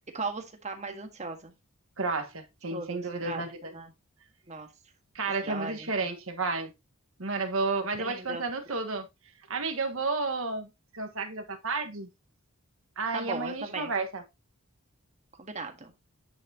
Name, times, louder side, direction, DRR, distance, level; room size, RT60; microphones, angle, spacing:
voice 1, 0.1-1.5 2.7-3.9 4.5-4.7 5.4-5.9 8.0-8.4 13.1-13.9 15.3-15.9, right 3 dB, 30° right, 1.6 m, -37 dB
voice 2, 2.0-3.7 5.1-6.7 7.2-9.1 9.5-12.1 13.0-14.2, right 3 dB, 65° right, 1.5 m, -32 dB
9.8 x 5.9 x 2.9 m
head